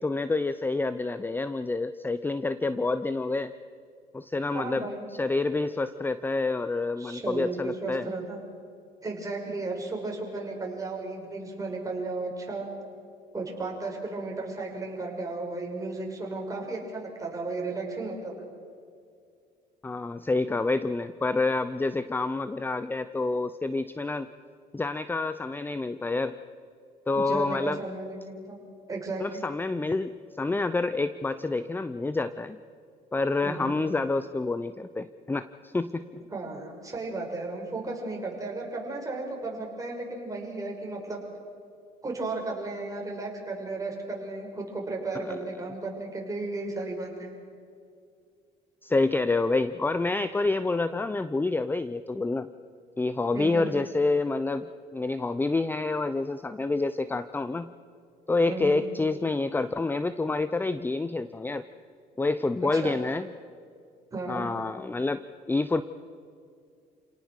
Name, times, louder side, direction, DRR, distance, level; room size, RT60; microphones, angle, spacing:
voice 1, 0.0-3.5 4.1-4.9 5.2-8.1 19.8-24.3 24.7-26.3 27.1-27.8 29.2-32.6 33.1-36.2 45.1-45.4 48.8-52.5 53.0-57.7 58.3-61.6 62.2-63.3 64.3-65.8, left 3 dB, 10° left, 13 dB, 0.6 m, -28 dB
voice 2, 4.5-5.1 7.0-8.4 9.0-12.7 13.3-18.3 27.1-28.6 28.9-29.4 33.4-33.7 36.3-41.2 42.0-47.3 53.3-53.7 58.5-58.8 62.7-63.1 64.1-64.5, right 3 dB, 20° right, 0 dB, 6.0 m, -34 dB
29.0 x 18.5 x 6.6 m, 2.3 s
cardioid pair, 110°, 17 cm